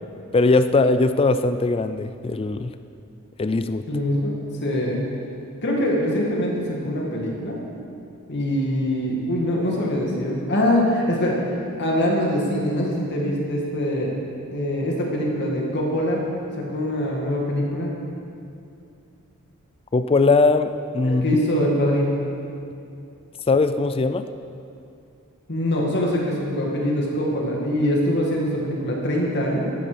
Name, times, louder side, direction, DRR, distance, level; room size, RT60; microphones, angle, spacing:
voice 1, 0.3-2.7 3.4-3.8 19.9-21.4 23.5-24.2, left 3 dB, 25° left, 10 dB, 0.4 m, -20 dB
voice 2, 3.9-4.3 4.6-5.1 5.6-7.6 8.3-11.4 11.8-14.1 14.5-16.2 16.6-17.9 21.0-22.2 25.5-29.7, left 1 dB, 50° left, -2 dB, 2.2 m, -23 dB
14.0 x 12.5 x 5.1 m, 2.5 s
head